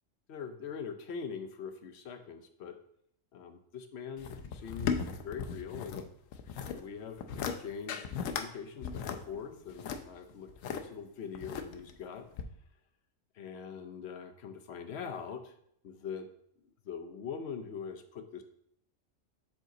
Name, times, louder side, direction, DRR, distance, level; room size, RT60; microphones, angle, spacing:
voice 1, 0.3-2.8 3.3-6.0 6.7-12.3 13.3-15.5 15.8-16.3 16.6-18.4, left 6 dB, 60° left, 6 dB, 0.8 m, -43 dB
sound 1, 4.2-6.0 6.3-6.8 7.2-7.6 7.9-8.5 8.8-10.8 11.3-11.9 12.4-12.5, left 7 dB, 85° left, 1.0 m, -36 dB
5.8 x 5.1 x 3.9 m, 0.69 s
omnidirectional pair, 1.4 m